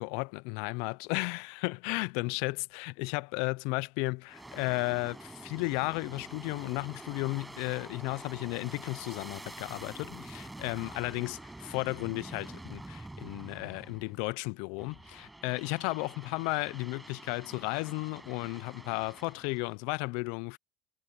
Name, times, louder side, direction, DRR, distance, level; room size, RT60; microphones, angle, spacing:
voice 1, 0.0-20.6, left 28 dB, 80° left, 0.3 m, -34 dB
Aircraft, 4.3-14.3 14.8-19.7, right 2 dB, 10° right, 6.7 m, -47 dB
supercardioid pair, 120°, 0 cm